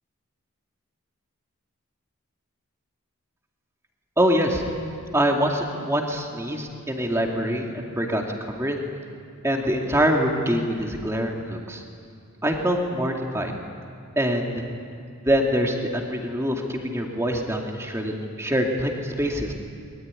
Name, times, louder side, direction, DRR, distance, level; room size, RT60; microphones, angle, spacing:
voice 1, 4.2-4.6 5.1-8.8 9.4-11.8 12.4-13.5 14.2-14.6 15.2-19.5, equal, 15° right, 1 dB, 2.5 m, -24 dB
23.5 x 21.5 x 9.7 m, 2.4 s
head